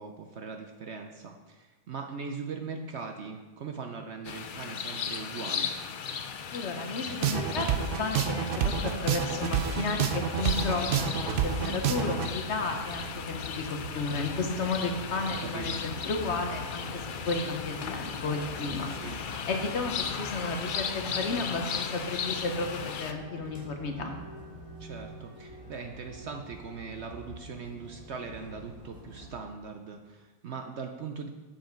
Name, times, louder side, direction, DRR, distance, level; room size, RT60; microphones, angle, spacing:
voice 1, 0.0-5.7 15.4-15.8 18.9-19.2 24.8-31.3, right 5 dB, 60° right, 4 dB, 0.8 m, -40 dB
sound 1, 4.2-23.1, left 7 dB, 80° left, 0.4 m, -36 dB
voice 2, 6.5-24.1, left 3 dB, 55° left, 4 dB, 1.1 m, -33 dB
sound 2, 7.1-12.3, right 8 dB, 85° right, 0.5 m, -29 dB
sound 3, 10.3-29.3, equal, 20° right, 2.8 m, -45 dB
7.6 x 7.4 x 4.5 m, 1.3 s
omnidirectional pair, 1.6 m